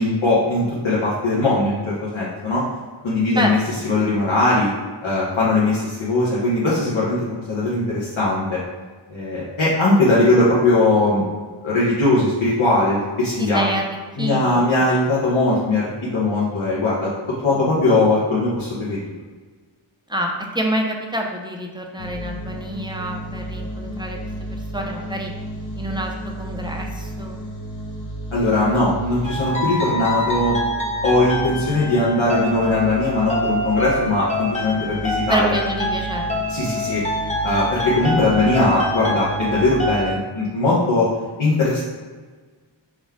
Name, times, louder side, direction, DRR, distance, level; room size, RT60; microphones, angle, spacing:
voice 1, 0.0-2.6 3.0-3.6 3.8-4.7 5.0-8.6 9.1-11.2 11.6-13.6 14.2-19.1 28.3-30.6 31.0-35.5 36.5-37.0 37.4-41.1 41.4-41.8, left 2 dB, 80° left, -8 dB, 1.2 m, -20 dB
voice 2, 13.4-14.6 20.1-24.2 24.5-25.3 25.8-27.4 35.3-36.4 36.6-36.9, right 1 dB, 10° right, 1 dB, 0.6 m, -27 dB
sound 1, 22.0-40.1, right 1 dB, 45° left, 0.8 m, -33 dB
sound 2, 29.2-40.2, left 1 dB, 15° left, 0.9 m, -26 dB
6.2 x 2.3 x 3.7 m, 1.4 s
wide cardioid pair, 70°, 46 cm